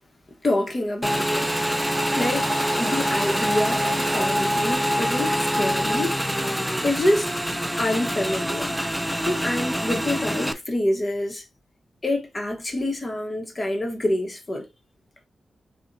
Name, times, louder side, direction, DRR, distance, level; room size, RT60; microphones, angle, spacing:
voice 1, 0.4-1.5 2.1-6.2 6.8-7.3 7.8-8.7 9.2-11.4 12.0-14.7, left 1 dB, 30° left, 1.1 m, -26 dB
Motorcycle / Engine, 1.0-10.5, equal, ahead, 0.4 m, -25 dB
Domestic sounds home sounds, 1.4-6.3, right 1 dB, 25° right, 2.0 m, -36 dB
6.8 x 2.4 x 2.7 m
wide cardioid pair, 110°, 0 cm